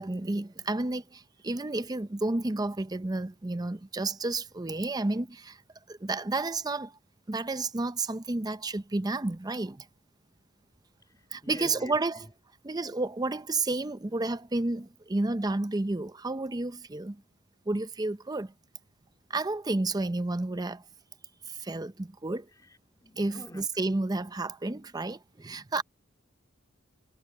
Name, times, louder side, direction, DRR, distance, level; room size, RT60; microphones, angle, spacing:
voice 1, 0.0-5.6 5.9-6.9 7.3-9.9 11.3-12.2 12.6-17.2 17.7-18.5 19.3-20.8 21.5-22.5 23.2-25.8, right 2 dB, 20° right, 0.6 m, -31 dB
voice 2, 11.0-12.3 22.5-23.8, left 1 dB, 20° left, 2.6 m, -49 dB
head